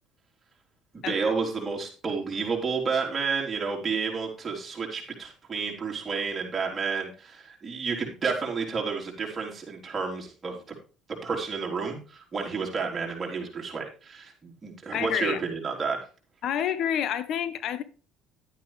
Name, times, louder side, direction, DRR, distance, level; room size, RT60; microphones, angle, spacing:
voice 1, 0.9-10.6 11.2-16.0, right 5 dB, 25° right, 3.6 m, -30 dB
voice 2, 14.9-15.4 16.4-17.8, left 9 dB, 55° left, 0.8 m, -28 dB
11.5 x 9.3 x 3.3 m
cardioid pair, 115°, 0 cm